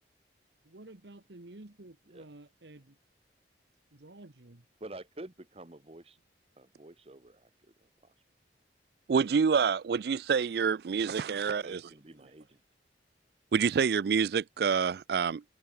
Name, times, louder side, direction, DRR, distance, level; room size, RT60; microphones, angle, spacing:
voice 1, 0.6-3.0 3.9-4.7, right 2 dB, 75° right, 1.5 m, -51 dB
voice 2, 4.8-6.2 6.6-7.5 7.8-8.1 11.6-12.6, right 2 dB, 35° right, 1.2 m, -48 dB
voice 3, 9.1-11.8 13.5-15.4, right 6 dB, 60° right, 0.4 m, -27 dB
head